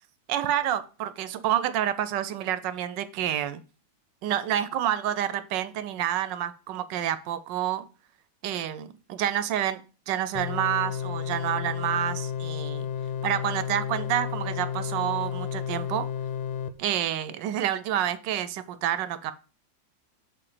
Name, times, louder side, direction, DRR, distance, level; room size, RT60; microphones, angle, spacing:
voice 1, 0.3-3.6 4.2-7.9 8.4-12.9 13.2-16.1 16.8-19.3, right 11 dB, 75° right, 14 dB, 1.2 m, -28 dB
sound 1, 10.3-16.7, left 8 dB, 90° left, 1.5 m, -32 dB
7.8 x 3.8 x 4.9 m, 0.35 s
omnidirectional pair, 2.1 m